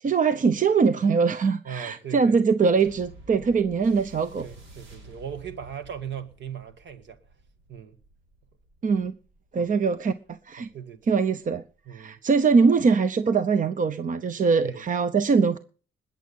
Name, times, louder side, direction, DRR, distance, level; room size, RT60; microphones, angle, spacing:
voice 1, 0.0-4.5 8.8-9.1 9.5-10.7 11.1-11.6 11.9-15.6, right 5 dB, 40° right, 0.8 m, -22 dB
voice 2, 1.6-2.4 4.4-7.2 7.7-8.0 9.5-9.7 10.6-11.1 11.9-12.2 14.6-14.8, right 8 dB, 65° right, 1.8 m, -38 dB
sound 1, 2.8-11.6 12.3-12.4, right 2 dB, 80° right, 4.9 m, -51 dB
20.5 x 7.6 x 5.5 m
cardioid pair, 90°, 20 cm